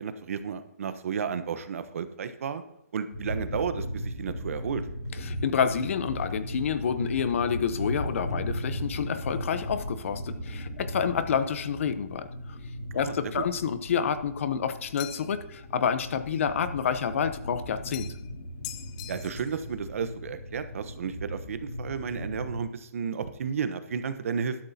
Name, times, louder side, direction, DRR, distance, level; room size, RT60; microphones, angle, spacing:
voice 1, 0.0-2.6 2.9-4.8 12.9-13.4 19.1-24.6, right 6 dB, 60° right, 10 dB, 1.1 m, -32 dB
sound 1, 3.1-22.6, equal, 80° left, 4.2 m, -37 dB
sound 2, 4.6-11.9, right 2 dB, 90° right, 3.7 m, -52 dB
voice 2, 5.2-12.6 12.9-18.1, left 7 dB, 55° left, 12 dB, 0.9 m, -28 dB
sound 3, 15.0-15.5 17.9-18.3 18.6-19.6, left 13 dB, 25° left, 0.6 m, -42 dB
13.0 x 12.0 x 2.8 m, 0.79 s
hypercardioid pair, 150°, 8 cm